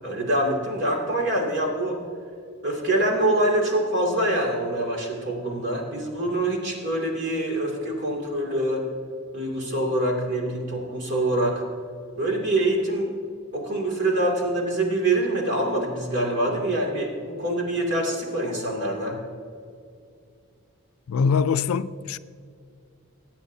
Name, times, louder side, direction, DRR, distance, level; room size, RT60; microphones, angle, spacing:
voice 1, 0.0-2.0 2.6-8.8 9.3-11.6 12.2-13.1 13.5-19.2, right 1 dB, 50° right, 2.5 m, -25 dB
voice 2, 21.1-22.2, left 5 dB, 80° left, 0.4 m, -23 dB
20.5 x 8.8 x 2.7 m
head